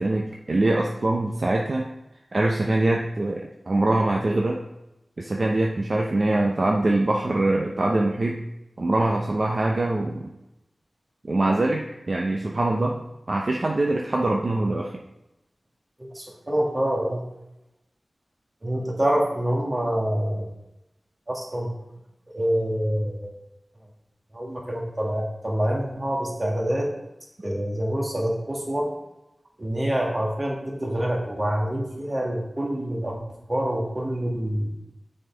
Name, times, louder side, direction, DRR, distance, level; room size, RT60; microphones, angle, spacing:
voice 1, 0.0-1.9 2.3-4.6 5.2-8.4 8.8-10.3 11.2-13.0 13.3-14.9, right 2 dB, 55° right, 0 dB, 0.6 m, -23 dB
voice 2, 16.0-17.2 18.6-20.5 21.3-21.7 22.3-23.3 24.3-26.9 27.4-29.0 29.6-33.2 33.5-34.7, equal, 30° right, -1 dB, 1.7 m, -26 dB
6.4 x 4.4 x 4.5 m, 0.91 s
wide cardioid pair, 80°, 0 cm